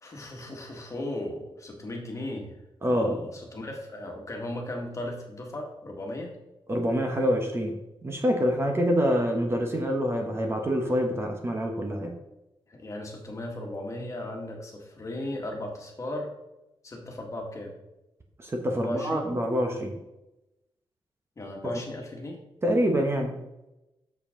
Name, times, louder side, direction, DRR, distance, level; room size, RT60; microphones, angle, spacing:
voice 1, 0.0-2.6 2.9-6.3 12.7-16.3 16.8-17.7 18.7-19.3 21.4-22.4, left 1 dB, 30° left, 1 dB, 1.8 m, -36 dB
voice 2, 2.8-3.2 6.7-7.8 8.0-12.1 18.4-20.0 21.6-21.7 22.6-23.4, equal, 25° right, 3 dB, 1.1 m, -26 dB
8.0 x 7.1 x 3.7 m, 0.94 s
wide cardioid pair, 150°, 10 cm